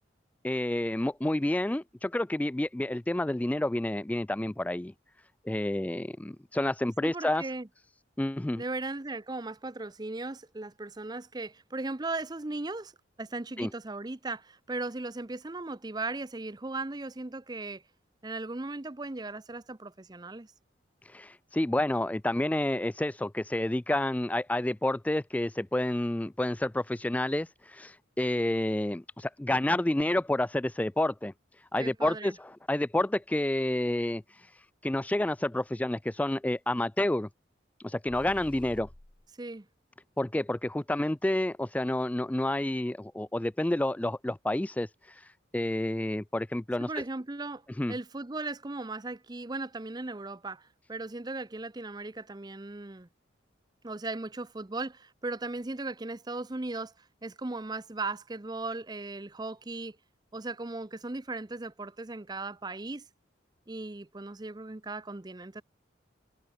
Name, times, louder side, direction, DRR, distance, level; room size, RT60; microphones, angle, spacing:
voice 1, 0.4-4.9 5.5-7.5 8.2-8.6 13.6-13.7 21.0-37.3 37.8-38.9 40.2-46.9 47.8-47.9, left 1 dB, 10° left, 0.3 m, -29 dB
voice 2, 7.0-7.7 8.5-12.9 13.2-17.8 18.2-20.5 31.8-32.3 39.4-39.7 46.8-47.6 47.9-53.1 53.8-56.9 57.2-60.0 60.3-63.0 63.7-65.6, right 2 dB, 20° right, 0.6 m, -37 dB
sound 1, 38.1-39.3, left 1 dB, 25° left, 1.1 m, -50 dB
head